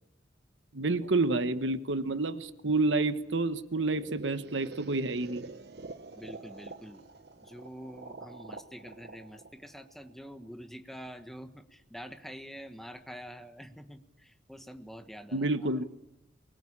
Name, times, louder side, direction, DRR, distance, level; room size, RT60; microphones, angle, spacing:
voice 1, 0.7-5.5 15.3-15.9, right 3 dB, 85° right, 11 dB, 1.3 m, -29 dB
sound 1, 3.8-10.6, right 3 dB, 60° right, 1.1 m, -47 dB
voice 2, 6.1-7.0 7.4-15.7, equal, ahead, 7 dB, 1.3 m, -46 dB
23.5 x 21.5 x 8.8 m, 0.95 s
head